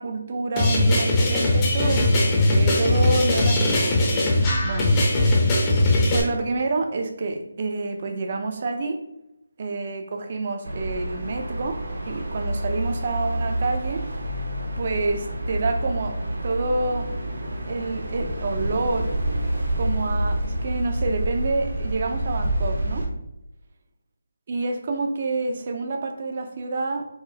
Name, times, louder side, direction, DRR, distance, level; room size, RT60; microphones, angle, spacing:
voice 1, 0.0-4.3 4.6-5.0 6.1-9.0 9.6-11.8 12.1-14.0 14.8-16.2 16.4-17.2 17.7-19.1 19.8-23.0 24.5-27.1, right 3 dB, 40° right, 5 dB, 0.5 m, -28 dB
sound 1, 0.6-6.2, left 1 dB, 20° left, 0.5 m, -20 dB
sound 2, 10.6-23.1, right 1 dB, 65° right, 0.8 m, -28 dB
4.7 x 2.0 x 2.7 m, 0.89 s
figure-of-eight pair, 160°, 0 cm